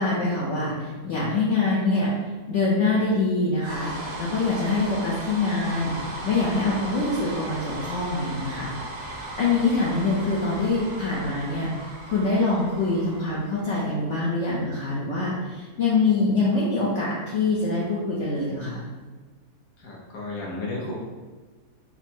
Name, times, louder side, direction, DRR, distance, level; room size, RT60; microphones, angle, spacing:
voice 1, 0.0-2.1 2.5-8.7 9.0-18.8, left 3 dB, 60° left, -6 dB, 0.8 m, -25 dB
sound 1, 3.6-13.9, right 1 dB, 65° right, 1.3 m, -37 dB
voice 2, 19.8-20.9, left 2 dB, 85° left, -4 dB, 1.3 m, -33 dB
4.3 x 2.0 x 4.2 m, 1.3 s
omnidirectional pair, 1.7 m